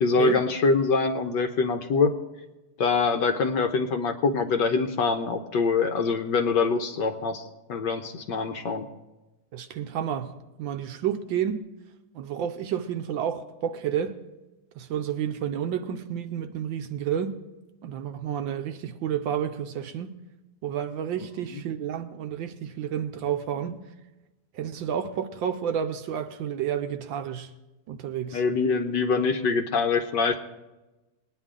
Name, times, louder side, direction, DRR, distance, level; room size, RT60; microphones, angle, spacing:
voice 1, 0.0-2.1 2.8-7.4 7.7-8.9 21.5-21.6 28.3-30.4, left 4 dB, 65° left, 1.3 m, -24 dB
voice 2, 9.5-11.6 12.1-14.2 14.8-17.4 17.8-20.2 20.6-23.8 24.5-27.5 27.9-28.4, right 9 dB, 75° right, 1.3 m, -30 dB
20.0 x 9.9 x 3.7 m
omnidirectional pair, 2.3 m